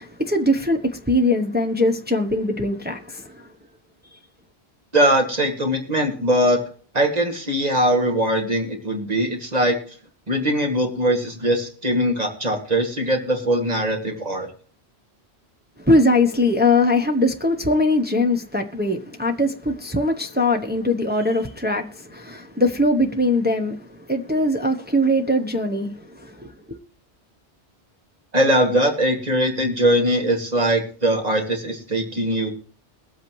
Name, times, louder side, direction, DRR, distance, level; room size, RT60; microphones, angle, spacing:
voice 1, 0.0-3.5 15.8-26.8, left 1 dB, 10° right, 0.8 m, -21 dB
voice 2, 4.9-6.6 6.9-9.8 10.3-14.5 28.3-32.5, right 1 dB, 40° right, 2.4 m, -21 dB
22.0 x 8.0 x 3.1 m
omnidirectional pair, 1.1 m